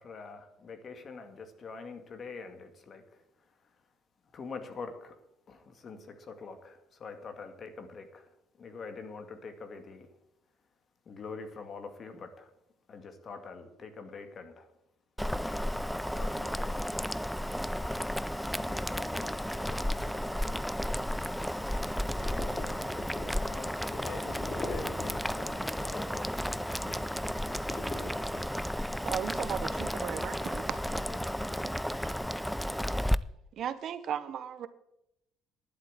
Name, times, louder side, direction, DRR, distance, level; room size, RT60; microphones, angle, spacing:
voice 1, 0.0-3.8 4.3-5.2 5.5-10.1 11.1-12.5 12.9-14.7 16.2-16.9, left 4 dB, 45° left, 2.1 m, -45 dB
Boiling, 15.2-33.1, equal, ahead, 0.4 m, -33 dB
voice 2, 18.6-19.4 19.7-21.0 23.4-26.3 30.6-31.4, left 5 dB, 75° left, 2.9 m, -47 dB
sound 1, 21.9-25.5 25.8-28.9, left 2 dB, 25° left, 3.1 m, -43 dB
voice 3, 29.0-30.8 33.6-34.7, right 9 dB, 60° right, 1.1 m, -36 dB
11.0 x 8.1 x 8.1 m
supercardioid pair, 85°, 0 cm